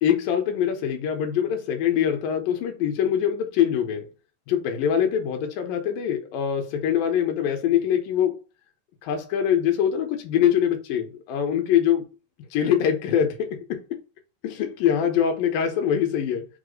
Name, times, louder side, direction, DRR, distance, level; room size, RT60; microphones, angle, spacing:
voice 1, 0.0-4.1 4.5-8.4 9.0-12.0 12.5-14.0 14.4-16.5, left 9 dB, 75° left, 2.4 m, -23 dB
5.6 x 2.0 x 3.7 m
omnidirectional pair, 4.2 m